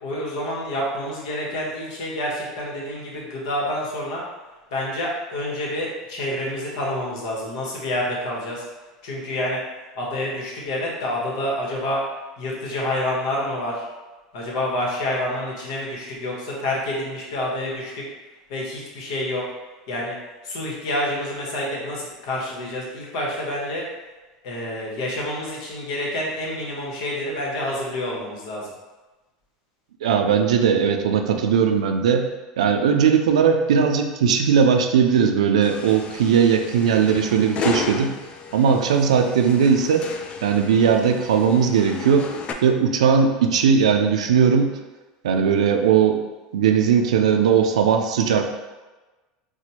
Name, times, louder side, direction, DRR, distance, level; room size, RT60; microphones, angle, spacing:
voice 1, 0.0-4.2 4.7-8.6 9.0-9.6 9.9-12.0 12.4-13.9 14.3-18.0 18.5-19.4 19.9-20.2 20.4-23.8 24.4-28.7, left 1 dB, 70° left, -3 dB, 1.1 m, -28 dB
voice 2, 30.0-32.3 32.6-38.1 38.5-40.1 40.4-42.3 42.6-44.7 45.2-46.2 46.5-48.6, right 7 dB, 90° right, 5 dB, 0.4 m, -18 dB
sound 1, 35.6-42.5, left 5 dB, 35° left, 0.4 m, -34 dB
4.3 x 2.2 x 2.8 m, 1.2 s
hypercardioid pair, 100°, 3 cm